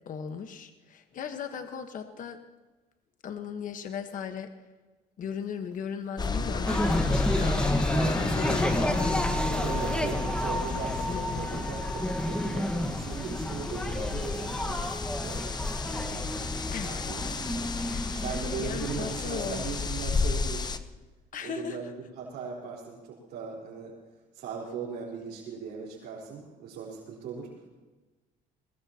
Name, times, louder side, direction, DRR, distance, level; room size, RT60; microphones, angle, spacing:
voice 1, 0.1-2.4 3.2-4.5 5.2-9.8 10.2-11.6 16.7-17.1 17.8-18.2 18.6-19.8 21.3-21.9, left 7 dB, 50° left, 7 dB, 1.3 m, -38 dB
sound 1, 6.2-20.8, left 4 dB, 25° left, 0.8 m, -32 dB
sound 2, 6.7-20.7, equal, 5° left, 1.5 m, -31 dB
voice 2, 9.5-11.1 11.4-15.5 16.8-17.7 18.1-20.6 21.4-23.9 24.3-27.6, right 5 dB, 75° right, -6 dB, 4.3 m, -39 dB
22.5 x 21.0 x 2.9 m, 1.2 s
cardioid pair, 110°, 17 cm